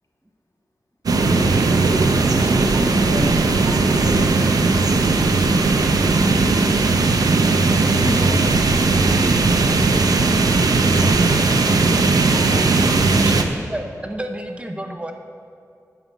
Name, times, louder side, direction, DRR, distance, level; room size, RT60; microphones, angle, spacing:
sound 1, 1.1-13.4, right 3 dB, 80° right, 0.8 m, -17 dB
voice 1, 2.7-4.3 7.6-8.5, left 1 dB, 60° left, -1 dB, 2.1 m, -30 dB
voice 2, 13.2-15.1, right 1 dB, 20° right, 5 dB, 0.8 m, -31 dB
11.0 x 5.6 x 7.2 m, 2.4 s
wide cardioid pair, 65°, 6 cm